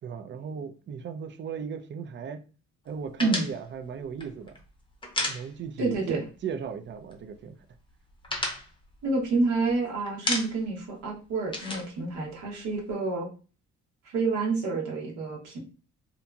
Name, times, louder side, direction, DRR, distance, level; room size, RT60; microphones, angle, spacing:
voice 1, 0.0-2.4 2.9-4.6 5.3-7.6, right 7 dB, 40° right, 0.4 m, -37 dB
sound 1, 3.2-6.0 6.2-6.4 6.7-7.4 7.7-9.7 10.1-10.8 11.1-12.9, left 2 dB, 15° left, 0.6 m, -33 dB
voice 2, 5.8-6.2 9.0-13.3 14.1-15.6, right 3 dB, 75° right, 1.0 m, -28 dB
2.8 x 2.5 x 2.2 m
cardioid pair, 90°, 30 cm